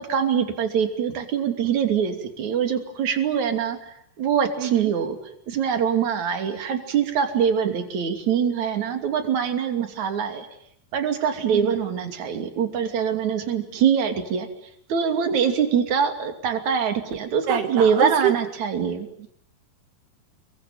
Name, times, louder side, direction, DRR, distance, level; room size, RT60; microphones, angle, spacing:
voice 1, 0.1-5.2 5.5-10.5 10.9-14.5 14.9-19.1, right 7 dB, 45° right, 7 dB, 3.8 m, -24 dB
voice 2, 4.6-4.9 11.5-11.7 17.5-18.3 19.2-19.3, right 10 dB, 75° right, 8 dB, 3.3 m, -25 dB
27.5 x 23.0 x 9.4 m, 0.70 s
omnidirectional pair, 4.9 m